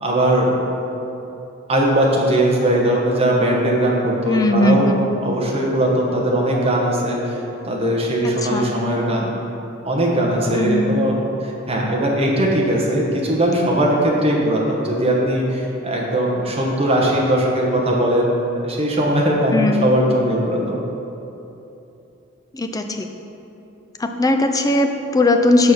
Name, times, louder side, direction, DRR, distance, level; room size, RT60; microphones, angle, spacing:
voice 1, 0.0-0.6 1.7-4.9 5.2-7.4 7.6-9.3 9.8-20.8, right 1 dB, 30° right, -2 dB, 1.1 m, -19 dB
voice 2, 4.2-5.1 8.5-8.7 10.6-10.9 19.5-19.8 22.5-23.1 24.0-25.7, left 2 dB, 20° left, 5 dB, 0.4 m, -18 dB
6.2 x 5.1 x 6.1 m, 2.9 s
head